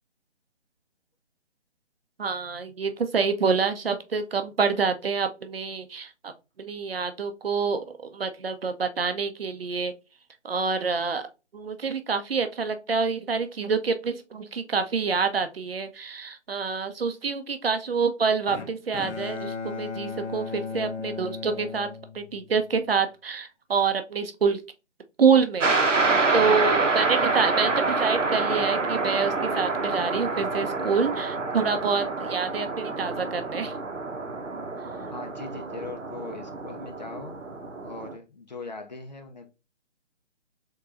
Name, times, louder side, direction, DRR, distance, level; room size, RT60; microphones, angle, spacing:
voice 1, 2.2-6.3 6.6-9.9 10.4-11.2 11.5-21.9 22.1-24.6 25.2-25.7 26.3-33.8, right 5 dB, 55° right, 0.6 m, -27 dB
Bowed string instrument, 18.5-22.7, left 5 dB, 75° left, 0.7 m, -36 dB
sound 1, 25.6-38.1, right 3 dB, 90° right, 0.8 m, -27 dB
voice 2, 35.0-37.4 37.8-39.5, left 3 dB, 40° left, 0.5 m, -40 dB
3.6 x 3.0 x 2.4 m
figure-of-eight pair, 145°, 36 cm